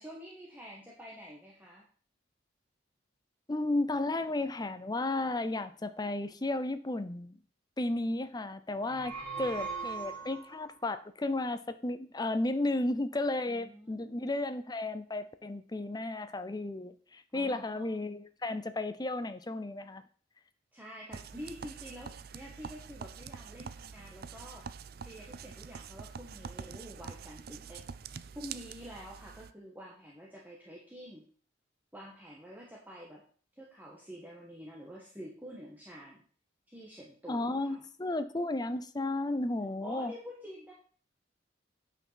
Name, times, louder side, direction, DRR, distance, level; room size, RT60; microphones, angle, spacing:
voice 1, 0.0-1.8 13.5-14.2 17.3-18.0 20.7-24.6 25.0-27.8 28.3-31.2 31.9-33.2 33.6-36.2 36.7-37.8 39.8-40.7, equal, 10° right, -4 dB, 1.5 m, -48 dB
voice 2, 3.5-7.4 7.8-20.0 37.3-40.1, left 2 dB, 20° left, 11 dB, 0.6 m, -33 dB
sound 1, 8.8-10.7, right 5 dB, 5° left, 3.9 m, -39 dB
sound 2, 21.1-29.5, right 6 dB, 55° right, 0.4 m, -46 dB
9.0 x 5.6 x 5.7 m, 0.44 s
head